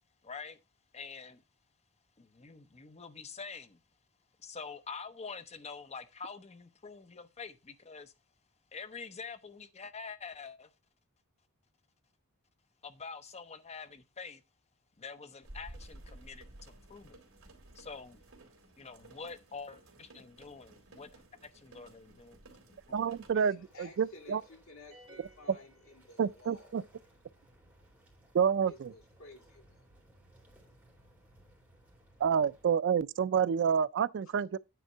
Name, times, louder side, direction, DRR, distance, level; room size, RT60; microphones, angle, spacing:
voice 1, 0.2-0.6 0.9-1.4 2.2-3.8 4.4-8.1 8.7-10.7 12.8-14.4 15.0-17.2 17.7-18.2 18.8-22.4 22.9-23.4, left 5 dB, 30° left, 0.7 m, -46 dB
sound 1, 15.4-23.3, right 1 dB, 75° right, 2.3 m, -54 dB
voice 2, 22.4-23.0 23.3-26.7 28.7-29.9, left 3 dB, 75° left, 2.7 m, -55 dB
voice 3, 22.9-24.4 26.2-26.8 28.3-28.9 32.2-34.6, right 7 dB, 55° right, 0.3 m, -29 dB
sound 2, 23.5-32.8, right 1 dB, 10° right, 2.6 m, -63 dB
sound 3, 24.9-26.6, right 2 dB, 30° right, 2.1 m, -58 dB
9.2 x 3.5 x 5.4 m
head